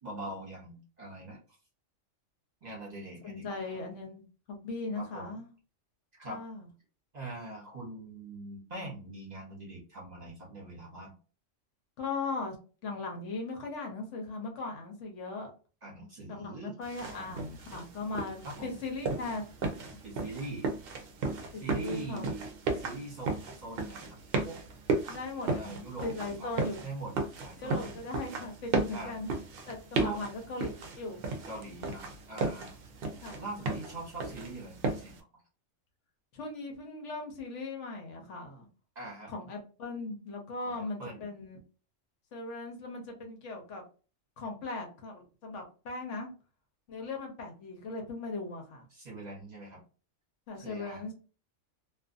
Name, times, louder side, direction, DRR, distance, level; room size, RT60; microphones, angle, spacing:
voice 1, 0.0-1.6 2.6-3.8 4.9-5.4 6.1-6.4 7.1-11.1 15.8-16.7 17.0-17.4 18.4-18.8 20.0-20.7 21.6-24.2 24.4-24.6 25.3-26.5 26.8-28.0 28.9-29.2 29.9-30.2 31.5-32.8 33.4-35.4 38.9-39.3 40.6-41.3 48.9-49.8 50.6-51.1, right 2 dB, 35° right, -3 dB, 1.0 m, -43 dB
voice 2, 3.2-5.5 6.3-6.7 12.0-12.6 12.8-15.5 16.3-19.4 21.5-22.3 25.0-26.9 27.6-29.4 29.7-31.2 33.2-33.5 36.3-38.7 39.3-41.6 42.3-43.8 44.4-46.3 46.9-48.9 50.5-51.1, left 3 dB, 75° left, 2 dB, 1.1 m, -38 dB
sound 1, 16.8-35.2, right 3 dB, 60° right, 0.7 m, -35 dB
2.5 x 2.5 x 2.5 m, 0.36 s
omnidirectional pair, 1.3 m